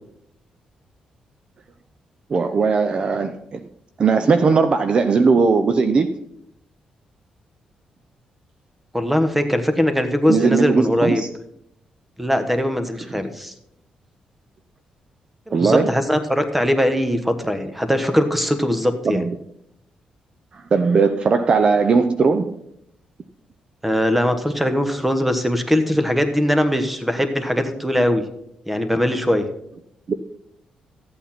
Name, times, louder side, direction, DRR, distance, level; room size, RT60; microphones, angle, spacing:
voice 1, 2.3-3.6 4.0-6.2 10.3-11.3 15.5-15.9 19.0-19.3 20.7-22.6 30.1-30.2, right 4 dB, 40° right, 9 dB, 0.7 m, -18 dB
voice 2, 8.9-11.2 12.2-13.5 15.5-19.3 23.8-28.2 28.7-29.5, equal, 5° right, 8 dB, 1.3 m, -20 dB
13.5 x 8.4 x 4.4 m, 0.75 s
cardioid pair, 105°, 2 cm